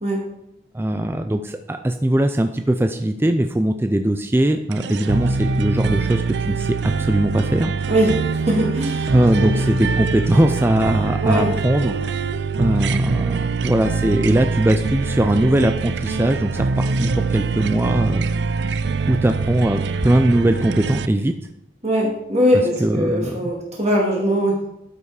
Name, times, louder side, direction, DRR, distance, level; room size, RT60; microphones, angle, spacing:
voice 1, 0.7-7.7 9.1-12.2 12.6-18.3 19.1-21.3 22.8-23.5, right 1 dB, 15° right, 7 dB, 0.4 m, -20 dB
sound 1, 4.7-21.1, right 4 dB, 80° right, 0.5 m, -23 dB
voice 2, 7.9-8.2 8.5-9.1 11.2-11.5 21.8-24.7, equal, 40° right, -2 dB, 2.1 m, -20 dB
12.0 x 5.6 x 4.9 m, 0.83 s
head